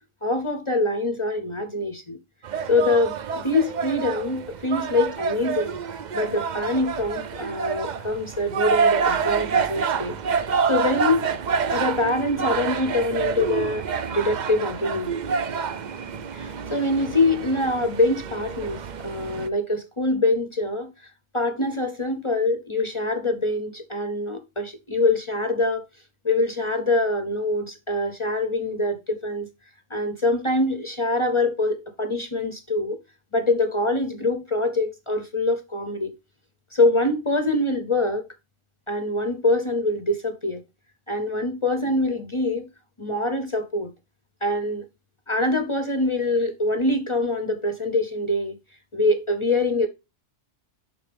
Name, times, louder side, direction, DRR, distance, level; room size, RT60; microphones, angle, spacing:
voice 1, 0.2-2.2 2.7-5.7 6.1-10.2 10.7-11.3 11.7-15.1 16.3-20.9 21.3-25.8 26.2-29.5 29.9-33.0 33.3-36.1 36.7-38.3 38.9-40.6 41.1-42.7 43.0-43.9 44.4-44.8 45.3-48.6 48.9-49.9, left 2 dB, 30° left, 0.6 m, -24 dB
sound 1, 2.4-19.5, right 6 dB, 50° right, 0.5 m, -27 dB
11.0 x 4.0 x 3.4 m
omnidirectional pair, 1.3 m